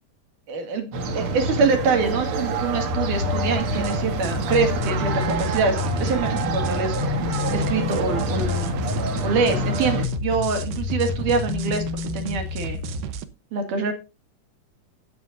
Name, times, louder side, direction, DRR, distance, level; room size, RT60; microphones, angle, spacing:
voice 1, 0.5-0.9 1.2-7.0 7.5-11.8 12.1-12.8 13.5-13.9, right 4 dB, 70° right, 5 dB, 3.7 m, -25 dB
sound 1, 0.9-10.1, right 3 dB, 55° right, 1.8 m, -27 dB
sound 2, 2.9-13.0, left 10 dB, 75° left, 1.9 m, -30 dB
sound 3, 3.6-13.2, right 7 dB, 85° right, 2.6 m, -34 dB
19.0 x 7.7 x 2.6 m, 0.27 s
omnidirectional pair, 3.9 m